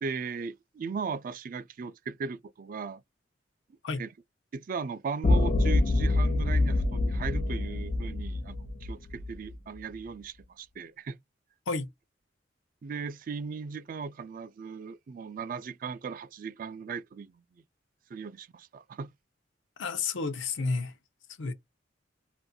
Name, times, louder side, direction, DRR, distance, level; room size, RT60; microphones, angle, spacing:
voice 1, 0.0-3.0 3.9-4.1 4.5-11.2 12.8-17.6 18.1-19.1, right 5 dB, 45° right, 0.3 m, -38 dB
sound 1, 5.2-9.6, left 2 dB, 35° left, 0.3 m, -26 dB
voice 2, 19.8-20.9 21.4-21.5, left 4 dB, 85° left, 0.6 m, -31 dB
2.5 x 2.2 x 2.6 m
head